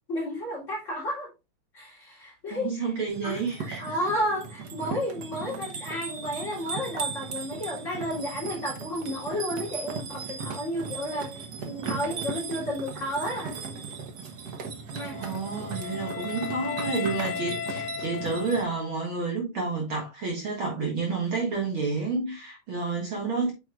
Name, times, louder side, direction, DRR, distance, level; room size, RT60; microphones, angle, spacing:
voice 1, 0.1-1.3 1.7-2.9 3.2-13.6 14.9-15.2, equal, 25° left, 3.4 m, -32 dB
voice 2, 2.5-3.8 5.5-5.6 15.1-23.5, right 4 dB, 50° right, 2.3 m, -30 dB
sound 1, 3.1-18.6, right 5 dB, 75° right, 0.9 m, -37 dB
Wind instrument woodwind instrument, 15.0-19.2, left 8 dB, 85° left, 2.2 m, -36 dB
8.6 x 6.4 x 2.4 m
omnidirectional pair, 3.3 m